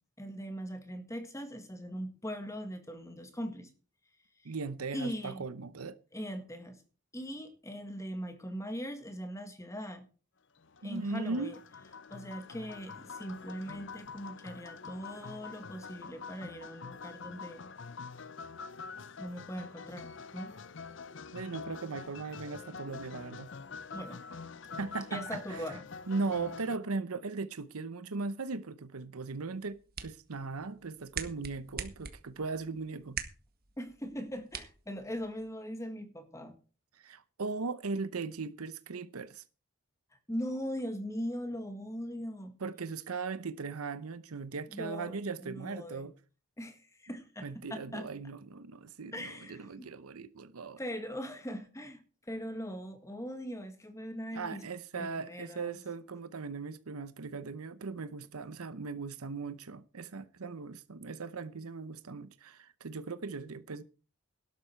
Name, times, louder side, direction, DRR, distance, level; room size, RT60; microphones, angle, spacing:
voice 1, 0.2-3.7 4.4-4.5 4.9-5.4 6.1-6.8 7.1-10.0 10.8-11.6 12.1-17.6 19.2-20.6 23.9-24.2 25.1-25.8 33.8-36.6 40.3-42.5 44.7-45.1 45.4-46.1 46.6-48.1 49.1-49.9 50.8-54.6 54.9-55.8, equal, 15° left, 1.8 m, -40 dB
voice 2, 4.4-6.0 10.8-11.5 21.3-23.5 24.8-25.6 26.1-33.2 36.9-39.4 42.6-46.1 47.4-50.8 54.3-63.8, right 4 dB, 85° right, 0.8 m, -38 dB
sound 1, 10.6-26.8, left 5 dB, 55° left, 0.6 m, -46 dB
sound 2, 29.5-35.5, right 7 dB, 45° right, 1.6 m, -45 dB
12.5 x 12.0 x 4.5 m
head